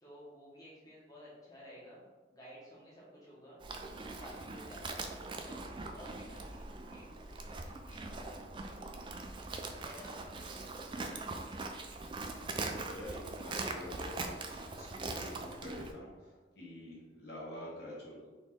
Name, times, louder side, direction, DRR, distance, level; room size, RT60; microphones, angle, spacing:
voice 1, 0.0-3.6 4.2-5.1 5.4-8.8 9.5-11.5 17.6-18.2, equal, 20° left, -7 dB, 1.1 m, -54 dB
Livestock farm animals working animals, 3.6-15.9, right 3 dB, 25° right, 0.3 m, -42 dB
voice 2, 12.7-18.3, left 1 dB, 60° left, -4 dB, 1.2 m, -47 dB
4.1 x 3.1 x 3.5 m, 1.3 s
head